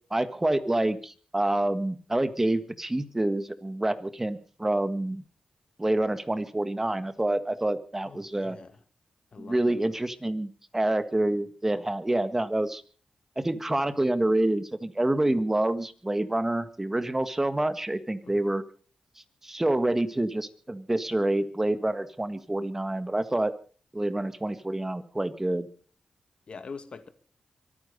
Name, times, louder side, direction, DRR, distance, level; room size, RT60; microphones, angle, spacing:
voice 1, 0.1-5.2 5.8-8.6 9.4-12.8 13.3-18.6 19.4-23.5 23.9-25.7, right 1 dB, 15° right, 11 dB, 1.7 m, -27 dB
voice 2, 8.0-8.8 9.3-10.1 18.2-18.4 26.5-27.1, left 5 dB, 55° left, 9 dB, 2.1 m, -44 dB
24.5 x 9.7 x 5.4 m, 0.43 s
cardioid pair, 70°, 2 cm